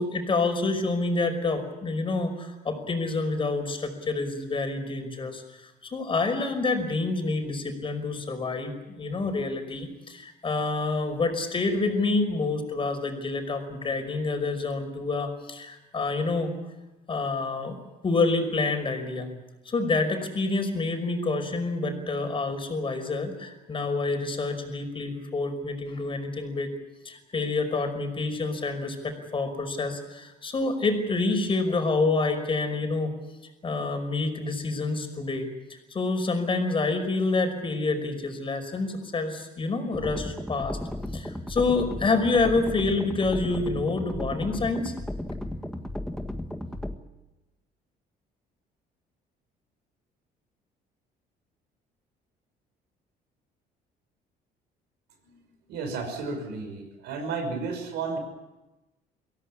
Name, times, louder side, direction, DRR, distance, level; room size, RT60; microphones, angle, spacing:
voice 1, 0.0-16.5 17.1-17.8 18.0-19.3 19.7-26.7 27.0-33.1 33.4-40.8 41.1-44.9, left 3 dB, 30° left, 6 dB, 5.3 m, -28 dB
sound 1, 39.9-46.9, left 1 dB, 5° left, 1.6 m, -34 dB
voice 2, 55.7-58.2, right 4 dB, 80° right, 6 dB, 6.0 m, -32 dB
23.5 x 17.0 x 9.9 m, 1.0 s
cardioid pair, 110°, 17 cm